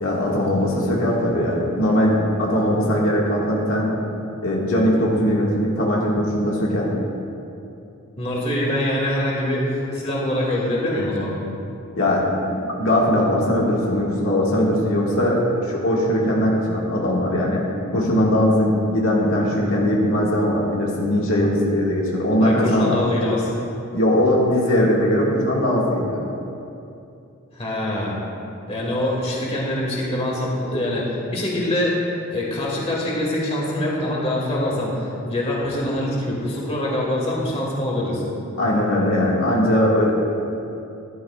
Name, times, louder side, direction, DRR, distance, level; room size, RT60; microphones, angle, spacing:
voice 1, 0.0-3.9 4.4-6.9 12.0-17.6 17.9-23.0 23.9-26.2 38.6-40.1, left 1 dB, 70° left, -4 dB, 1.8 m, -20 dB
voice 2, 8.2-11.4 22.4-23.4 27.5-28.1 28.7-38.3, left 1 dB, 30° left, -4 dB, 2.2 m, -24 dB
15.0 x 11.5 x 2.4 m, 2.7 s
head